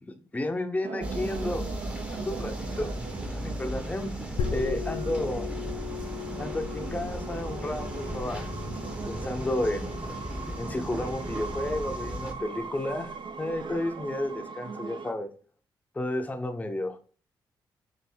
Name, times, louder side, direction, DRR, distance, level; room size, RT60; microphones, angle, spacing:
voice 1, 0.0-1.7 2.1-2.9 3.3-4.1 4.5-5.5 6.4-8.5 9.0-9.9 10.6-13.1 13.4-15.3 15.9-17.0, left 1 dB, 20° left, 6 dB, 0.6 m, -32 dB
sound 1, 0.8-15.1, right 5 dB, 65° right, 0.4 m, -40 dB
sound 2, 1.0-12.3, equal, 15° right, 0.7 m, -37 dB
sound 3, 4.4-13.7, left 7 dB, 90° left, 0.4 m, -39 dB
3.4 x 2.6 x 4.3 m, 0.41 s
cardioid pair, 65°, 9 cm